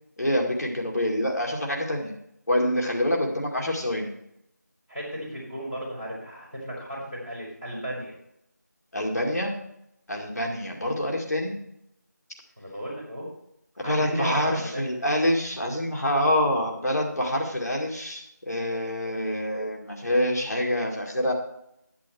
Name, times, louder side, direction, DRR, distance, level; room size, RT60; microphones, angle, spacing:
voice 1, 0.2-2.1 2.5-4.1 8.9-9.6 10.1-11.6 13.8-21.3, left 1 dB, 60° left, 0 dB, 2.2 m, -26 dB
voice 2, 4.9-8.1 12.6-13.3 13.8-14.9, equal, 5° left, -20 dB, 3.2 m, -34 dB
10.0 x 9.5 x 4.5 m, 0.78 s
figure-of-eight pair, 180°, 10 cm